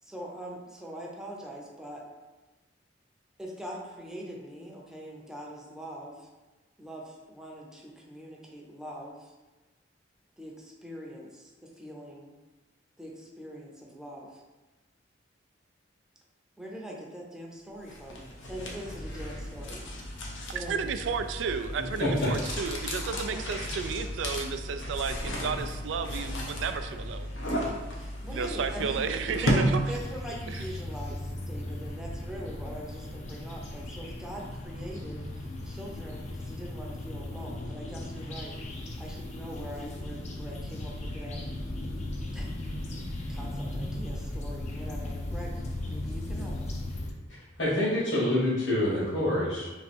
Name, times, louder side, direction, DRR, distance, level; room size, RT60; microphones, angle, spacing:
voice 1, 0.0-2.1 3.4-6.3 6.8-9.3 10.4-12.3 13.0-14.4 16.6-19.9 20.5-20.9 23.3-23.6 28.0-29.1 29.4-41.4 42.3-42.5 43.3-46.7, equal, 5° right, -3 dB, 0.6 m, -43 dB
sound 1, 17.9-30.2, equal, 85° left, 0.8 m, -34 dB
voice 2, 20.5-27.3 28.3-29.8 30.5-30.6, right 5 dB, 75° right, 8 dB, 0.3 m, -32 dB
voice 3, 22.0-22.3 47.6-49.7, left 1 dB, 70° left, -10 dB, 1.4 m, -26 dB
sound 2, 29.9-47.1, left 1 dB, 40° left, 0.5 m, -37 dB
3.3 x 3.1 x 4.3 m, 1.2 s
head